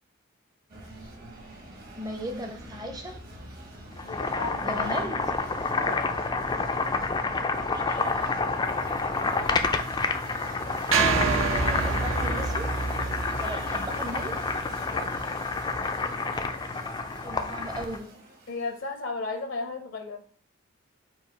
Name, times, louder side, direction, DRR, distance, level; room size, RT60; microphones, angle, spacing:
sound 1, 0.7-19.0, right 1 dB, 45° right, 1.1 m, -46 dB
voice 1, 1.9-3.2 4.6-5.3 7.7-8.1 10.9-12.8 13.4-14.4 17.2-18.2, right 1 dB, 20° right, 0.6 m, -36 dB
Boiling, 3.9-18.0, left 3 dB, 20° left, 0.3 m, -29 dB
voice 2, 4.0-4.8 5.8-6.1 13.4-13.5 14.9-15.0 18.5-20.2, left 3 dB, 65° left, 0.6 m, -35 dB
sound 2, 10.9-15.2, right 4 dB, 70° right, 0.5 m, -28 dB
4.7 x 2.3 x 4.5 m
head